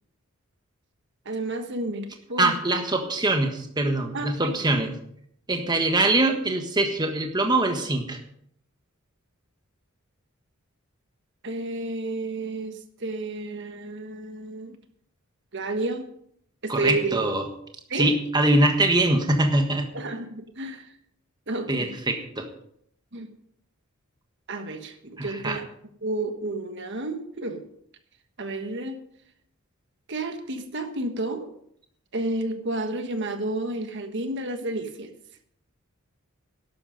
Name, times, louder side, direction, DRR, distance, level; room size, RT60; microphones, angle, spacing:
voice 1, 1.2-2.7 4.1-4.6 11.4-14.8 15.5-16.1 16.6-17.2 17.9-18.1 19.9-20.9 21.5-21.9 23.1-23.3 24.5-25.6 26.0-27.7 28.4-29.0 30.1-31.5 32.1-35.1, right 2 dB, 55° right, 7 dB, 1.4 m, -31 dB
voice 2, 2.4-4.9 5.5-8.2 16.7-17.4 17.9-19.9 21.7-22.5 25.2-25.6, right 2 dB, 20° right, 5 dB, 1.4 m, -23 dB
13.0 x 11.5 x 5.3 m, 0.68 s
head